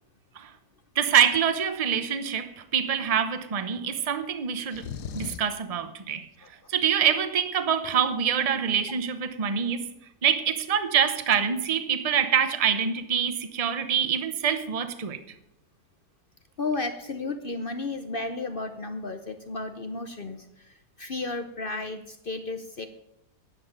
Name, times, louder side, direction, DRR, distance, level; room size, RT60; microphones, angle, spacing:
voice 1, 1.0-6.3 6.7-9.9 10.2-15.2, right 8 dB, 30° right, 0.7 m, -25 dB
sound 1, 4.7-5.6, left 7 dB, 75° left, 1.3 m, -36 dB
voice 2, 6.4-6.7 16.6-22.9, left 3 dB, 45° left, 0.7 m, -33 dB
11.0 x 7.9 x 9.1 m
omnidirectional pair, 1.8 m